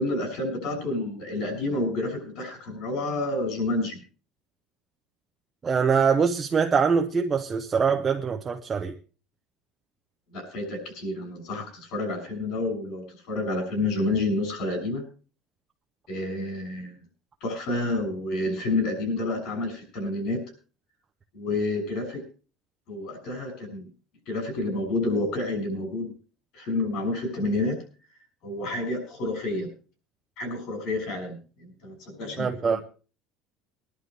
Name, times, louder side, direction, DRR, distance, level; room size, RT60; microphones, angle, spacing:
voice 1, 0.0-4.0 10.3-15.0 16.1-17.0 17.4-20.4 21.3-22.2 22.9-23.9 24.3-26.1 26.5-27.8 28.4-29.7 30.4-32.8, left 2 dB, 50° left, 6.5 m, -29 dB
voice 2, 5.6-8.9 32.4-32.8, right 6 dB, 20° right, 0.6 m, -23 dB
22.0 x 11.5 x 3.3 m
cardioid pair, 175°, 0 cm